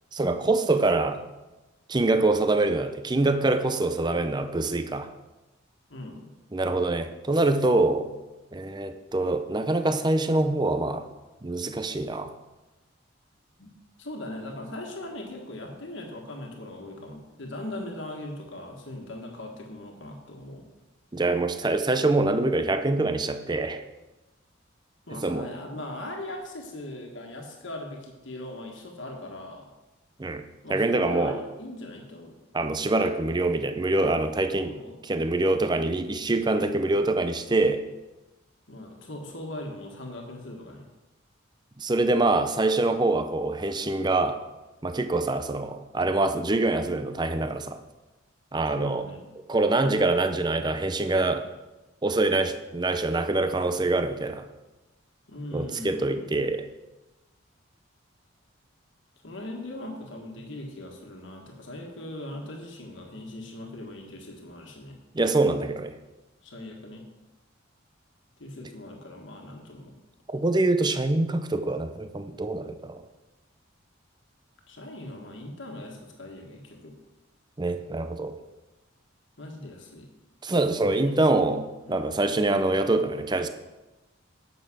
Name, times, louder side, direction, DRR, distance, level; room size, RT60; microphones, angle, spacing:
voice 1, 0.1-1.2 1.9-5.1 6.5-8.1 8.5-11.1 11.4-12.3 21.1-23.8 25.2-25.5 30.2-31.4 32.5-34.8 35.0-37.8 41.8-44.4 44.8-47.8 48.5-49.0 49.5-51.5 52.0-54.5 55.5-56.7 65.1-65.9 70.3-73.0 77.6-78.3 80.4-81.6 81.9-83.5, right 2 dB, 20° right, 9 dB, 0.6 m, -25 dB
voice 2, 5.9-6.3 13.6-13.7 14.0-20.7 25.1-29.7 30.6-32.4 34.6-35.0 38.7-40.9 48.7-49.2 55.3-56.2 59.2-65.0 66.4-67.1 68.4-69.9 74.7-76.9 79.4-80.1 80.5-81.6 81.8-82.2, left 1 dB, 65° left, 1 dB, 1.7 m, -40 dB
9.9 x 6.6 x 6.2 m, 1.1 s
head